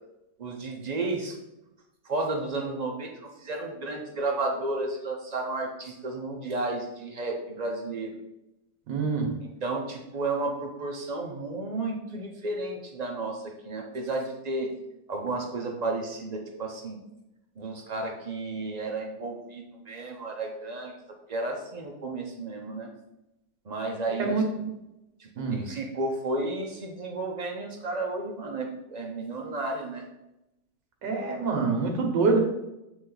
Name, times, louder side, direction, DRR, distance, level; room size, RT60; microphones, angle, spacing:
voice 1, 0.4-1.4 2.1-8.2 9.4-14.7 15.1-17.0 17.6-20.9 21.3-22.9 23.7-24.4 25.2-30.0, right 2 dB, 60° right, 1 dB, 0.4 m, -32 dB
voice 2, 8.9-9.3 24.2-24.7 25.4-25.6 31.0-32.4, right 4 dB, 75° right, 2 dB, 1.8 m, -26 dB
8.1 x 3.5 x 3.9 m, 0.91 s
omnidirectional pair, 1.9 m